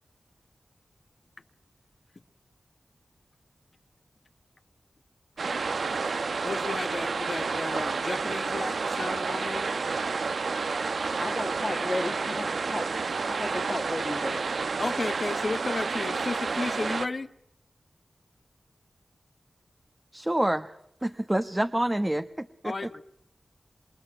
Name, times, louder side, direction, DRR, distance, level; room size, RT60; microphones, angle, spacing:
sound 1, 5.4-17.1, right 4 dB, 80° right, 1.1 m, -30 dB
voice 1, 6.4-9.7 14.8-17.3 22.6-23.0, left 3 dB, 55° left, 1.4 m, -33 dB
voice 2, 11.2-14.5, left 2 dB, 30° left, 1.8 m, -34 dB
voice 3, 20.1-20.7 21.0-22.7, right 1 dB, 15° right, 1.2 m, -27 dB
27.5 x 21.5 x 9.0 m
wide cardioid pair, 70°, 0 cm